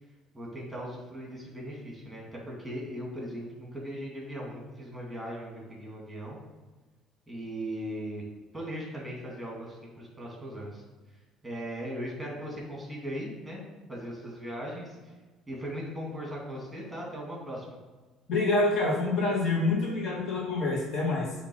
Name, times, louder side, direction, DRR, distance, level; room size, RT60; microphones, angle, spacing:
voice 1, 0.3-6.4 7.3-8.3 8.5-10.8 11.4-13.6 13.9-15.0 15.5-17.7, equal, 5° right, -3 dB, 2.4 m, -38 dB
voice 2, 18.3-21.3, left 2 dB, 50° left, -2 dB, 1.8 m, -27 dB
8.3 x 3.1 x 6.3 m, 1.3 s
cardioid pair, 115°, 0 cm